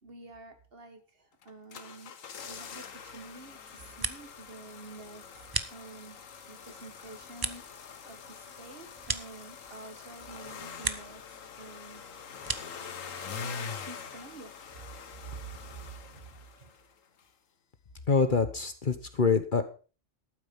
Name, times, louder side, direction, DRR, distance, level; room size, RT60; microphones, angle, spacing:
voice 1, 0.0-2.1 2.5-5.4 5.7-6.2 6.5-11.2 11.6-12.0 13.4-14.6 15.2-16.7, right 3 dB, 50° right, 8 dB, 1.8 m, -48 dB
Honda Engine Start and Rev, 1.4-16.9 17.2-17.3, left 6 dB, 85° left, 1.5 m, -44 dB
sound 1, 3.7-4.5 4.8-6.3 6.7-10.0 10.3-11.3 11.6-12.9, right 3 dB, 25° right, 0.6 m, -38 dB
voice 2, 18.1-19.6, left 5 dB, 40° left, 9 dB, 1.2 m, -25 dB
12.5 x 9.0 x 5.4 m, 0.36 s
omnidirectional pair, 1.3 m